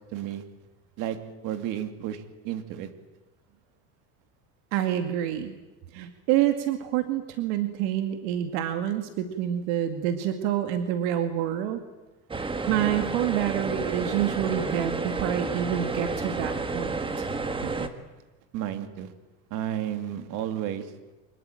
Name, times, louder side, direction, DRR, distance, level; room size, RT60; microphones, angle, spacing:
voice 1, 0.1-0.4 1.0-2.9 17.6-17.9 18.5-19.1 19.5-20.9, right 10 dB, 60° right, 9 dB, 2.9 m, -32 dB
voice 2, 4.7-5.5 5.9-11.8 12.7-17.3, right 11 dB, 80° right, 8 dB, 2.3 m, -27 dB
sound 1, 12.3-17.9, right 3 dB, 15° right, 1.7 m, -30 dB
25.0 x 21.5 x 9.2 m, 1.1 s
cardioid pair, 150°, 35 cm